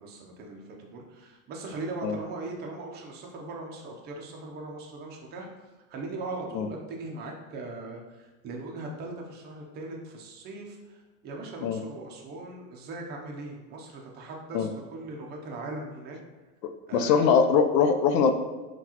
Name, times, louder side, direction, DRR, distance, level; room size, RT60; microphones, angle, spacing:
voice 1, 0.0-5.5 5.9-16.2 16.9-17.3, right 2 dB, 20° right, 1 dB, 0.5 m, -39 dB
voice 2, 16.9-18.3, left 6 dB, 85° left, 7 dB, 0.7 m, -22 dB
5.9 x 2.3 x 2.8 m, 1.3 s
supercardioid pair, 130°, 49 cm